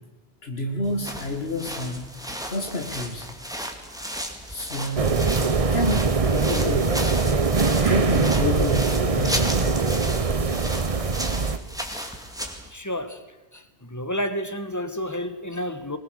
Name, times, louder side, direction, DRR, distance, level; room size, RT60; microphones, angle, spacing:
voice 1, 0.4-2.1 2.5-3.3 4.5-5.2 5.7-7.0 7.8-9.6, left 1 dB, 70° left, 2.3 m, -29 dB
sound 1, 0.8-12.7, equal, 5° right, 2.1 m, -34 dB
sound 2, 5.0-11.6, right 4 dB, 35° right, 1.0 m, -22 dB
voice 2, 12.7-13.2 13.5-13.6 13.9-16.0, equal, 15° left, 1.4 m, -30 dB
22.5 x 20.5 x 6.5 m
omnidirectional pair, 1.1 m